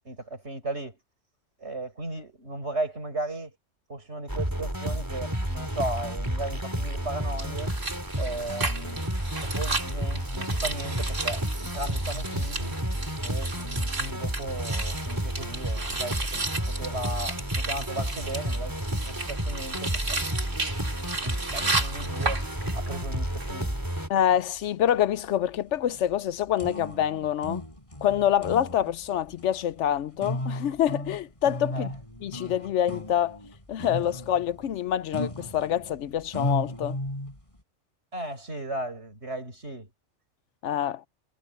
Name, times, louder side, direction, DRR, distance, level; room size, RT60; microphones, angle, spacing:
voice 1, 0.0-1.0 1.6-3.5 3.9-7.7 8.1-9.0 9.4-12.8 13.2-20.2 21.2-22.4 22.7-23.7 31.7-31.9 38.1-39.9, right 2 dB, 60° right, 6.1 m, -36 dB
sound 1, 4.3-24.1, equal, 15° right, 3.5 m, -31 dB
sound 2, 7.4-23.0 23.2-23.5, right 3 dB, 85° right, 3.5 m, -34 dB
voice 2, 24.1-27.6 28.0-31.9 32.2-33.4 33.7-37.0 40.6-41.0, left 10 dB, 75° left, 0.9 m, -26 dB
sound 3, 24.1-37.6, left 1 dB, 25° left, 5.4 m, -36 dB
omnidirectional pair, 1.2 m